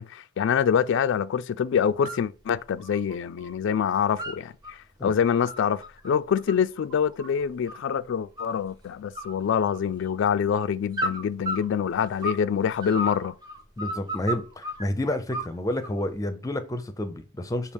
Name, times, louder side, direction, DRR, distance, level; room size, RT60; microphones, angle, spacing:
voice 1, 0.0-13.3, left 7 dB, 65° left, 0.3 m, -25 dB
sound 1, 1.8-2.3 2.6-3.5 3.8-4.7 5.2-7.9 8.4-8.8 9.1-10.1 10.9-12.5 12.8-14.8 15.3-16.0, equal, 20° right, 0.7 m, -34 dB
voice 2, 13.8-17.7, left 1 dB, 15° left, 0.6 m, -30 dB
6.1 x 2.4 x 3.5 m
head